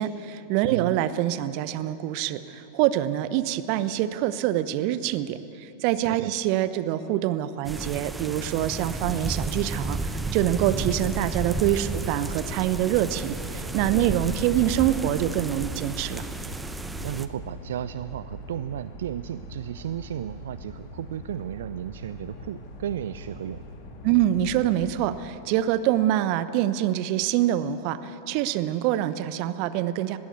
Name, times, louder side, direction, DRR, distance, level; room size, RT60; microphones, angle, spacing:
voice 1, 0.0-16.3 24.0-30.2, right 12 dB, 45° right, 14 dB, 0.9 m, -25 dB
sound 1, 7.6-17.3, right 2 dB, 10° right, 0.9 m, -32 dB
sound 2, 11.4-25.1, equal, 45° left, 2.5 m, -42 dB
voice 2, 17.0-23.6, right 10 dB, 60° right, 15 dB, 0.4 m, -34 dB
20.5 x 16.5 x 8.4 m, 3.0 s
figure-of-eight pair, 90°, 0 cm